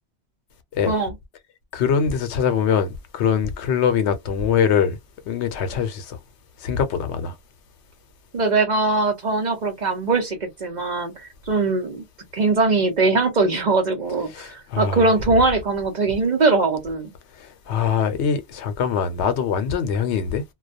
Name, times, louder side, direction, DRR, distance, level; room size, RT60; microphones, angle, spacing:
voice 1, 1.7-5.0 5.3-6.2 6.6-7.3 14.3-15.1 17.4-20.4, left 7 dB, 75° left, 0.9 m, -23 dB
voice 2, 8.3-12.0 12.3-17.1, right 3 dB, 45° right, 0.7 m, -21 dB
2.3 x 2.1 x 2.5 m
omnidirectional pair, 1.2 m